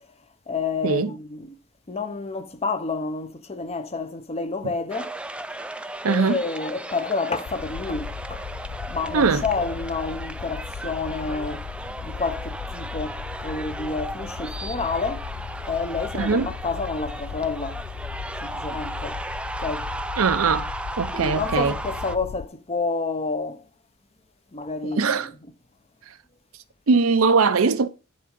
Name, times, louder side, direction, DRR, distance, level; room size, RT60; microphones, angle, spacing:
voice 1, 0.5-1.5 1.9-5.1 6.1-8.4 8.9-11.7 12.0-15.3 15.7-17.8 18.4-19.2 19.6-19.9 21.1-23.6 24.5-25.2, left 4 dB, 30° left, 0.8 m, -29 dB
sound 1, 4.9-22.2, right 2 dB, 5° right, 0.4 m, -35 dB
voice 2, 6.0-6.4 9.1-9.4 16.2-16.5 20.2-21.8 24.8-25.3 26.1-26.2 26.9-27.9, right 4 dB, 70° right, 0.7 m, -21 dB
sound 2, 7.4-22.5, left 7 dB, 65° left, 0.3 m, -36 dB
10.0 x 3.7 x 5.3 m
head